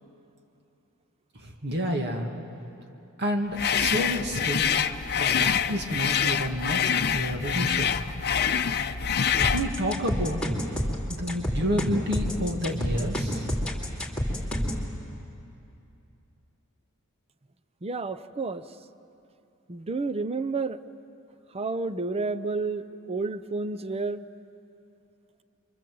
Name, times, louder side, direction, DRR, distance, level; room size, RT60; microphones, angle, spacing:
voice 1, 1.3-2.3 3.2-4.7 5.1-8.0 9.5-10.6 11.1-13.5, equal, 50° right, 2 dB, 2.3 m, -29 dB
sound 1, 3.6-9.7, left 7 dB, 50° left, 0.7 m, -26 dB
sound 2, 9.4-14.8, equal, 5° left, 3.1 m, -28 dB
voice 2, 17.8-18.6 19.7-20.8 21.5-24.2, right 3 dB, 25° right, 12 dB, 0.6 m, -30 dB
27.5 x 24.0 x 7.8 m, 2.8 s
head